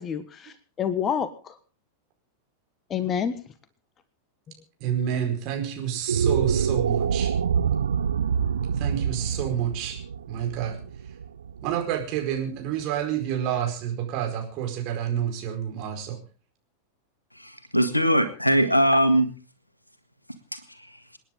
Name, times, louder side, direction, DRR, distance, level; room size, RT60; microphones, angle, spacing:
voice 1, 0.0-1.6 2.9-3.3, left 8 dB, 25° left, 13 dB, 1.4 m, -28 dB
voice 2, 4.8-7.3 8.8-10.0 10.3-10.8 11.6-16.2, right 9 dB, 40° right, 3 dB, 4.7 m, -29 dB
sound 1, 5.9-12.3, right 7 dB, 70° right, 0.6 m, -26 dB
voice 3, 17.3-19.3 20.3-21.0, equal, 90° left, 9 dB, 1.8 m, -22 dB
27.5 x 10.0 x 3.8 m, 0.38 s
figure-of-eight pair, 90°, 0 cm